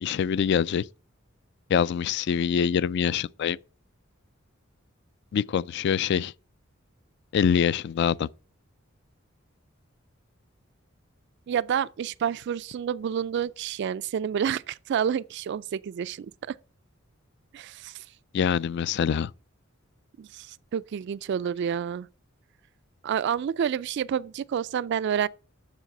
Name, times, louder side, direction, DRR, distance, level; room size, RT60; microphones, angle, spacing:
voice 1, 0.0-0.9 1.7-3.6 5.3-6.3 7.3-8.3 18.3-19.3, left 7 dB, 55° left, 0.3 m, -24 dB
voice 2, 11.5-16.6 17.5-18.0 20.2-22.1 23.0-25.3, right 8 dB, 55° right, 0.3 m, -29 dB
7.4 x 6.7 x 5.2 m
head